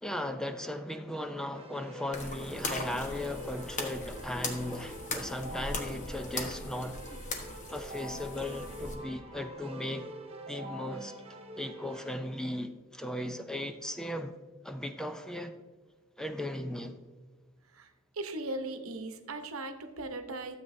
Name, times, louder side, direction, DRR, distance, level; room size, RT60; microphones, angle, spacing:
voice 1, 0.0-7.0 7.7-10.1 10.5-11.1 11.6-14.3 14.6-15.5 16.2-17.0, left 1 dB, 5° left, 7 dB, 0.4 m, -37 dB
Keyboard (musical), 1.5-12.1, equal, 30° right, 1.1 m, -46 dB
sound 1, 2.1-8.9, left 2 dB, 35° left, 1.2 m, -39 dB
voice 2, 17.7-20.6, right 2 dB, 90° right, 7 dB, 0.9 m, -38 dB
13.0 x 7.6 x 2.7 m, 1.4 s
head